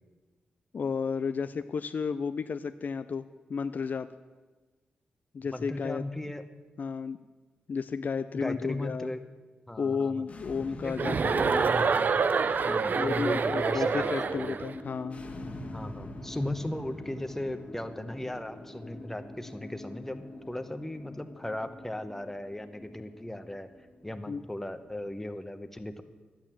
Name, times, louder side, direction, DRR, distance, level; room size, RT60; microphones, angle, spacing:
voice 1, 0.7-4.1 5.3-6.0 6.8-7.2 7.7-9.1 9.8-11.6 12.9-15.2 24.3-24.4, left 5 dB, 55° left, 11 dB, 0.5 m, -32 dB
voice 2, 5.5-6.4 8.3-9.2 9.7-10.2 10.8-11.1 11.5-12.1 12.6-14.6 15.7-23.7 24.0-26.0, left 1 dB, 10° left, 9 dB, 1.0 m, -37 dB
sound 1, 10.2-25.2, left 1 dB, 40° left, 1.6 m, -45 dB
Chuckle chortle, 11.0-14.7, right 5 dB, 60° right, 0.6 m, -27 dB
11.5 x 9.0 x 7.4 m, 1.3 s
cardioid pair, 60°, 3 cm